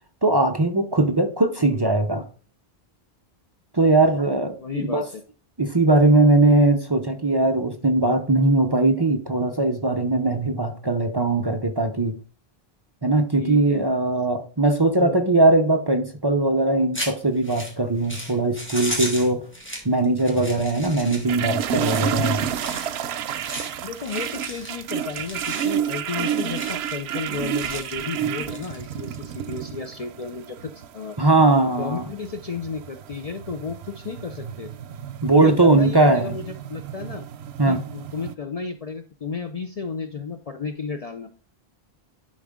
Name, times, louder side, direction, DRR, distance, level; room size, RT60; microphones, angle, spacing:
voice 1, 0.2-2.2 3.7-5.0 5.6-12.2 13.0-19.5 19.8-22.5 31.2-32.1 35.2-36.4 37.6-37.8, right 2 dB, 25° right, 5 dB, 0.7 m, -20 dB
voice 2, 4.6-5.2 13.4-13.9 15.0-15.2 23.8-31.2 31.6-34.7 35.3-37.3 37.7-41.3, left 5 dB, 50° left, 7 dB, 0.5 m, -33 dB
sound 1, 16.9-29.3, equal, 10° left, 1.8 m, -36 dB
sound 2, 21.3-38.3, right 9 dB, 90° right, 0.8 m, -30 dB
10.5 x 3.9 x 3.6 m, 0.40 s
omnidirectional pair, 1.1 m